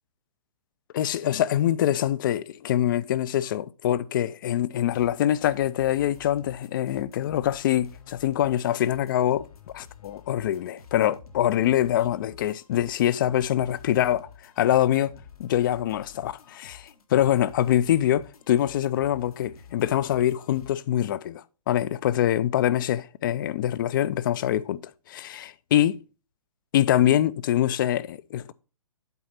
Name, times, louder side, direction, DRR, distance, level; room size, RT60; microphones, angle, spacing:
voice 1, 0.9-9.5 9.7-15.1 15.4-24.8 25.1-26.0 26.7-28.5, left 12 dB, 35° left, 0.4 m, -24 dB
sound 1, 4.9-20.8, left 6 dB, 80° left, 1.4 m, -50 dB
8.0 x 4.0 x 5.6 m
hypercardioid pair, 140°, 19 cm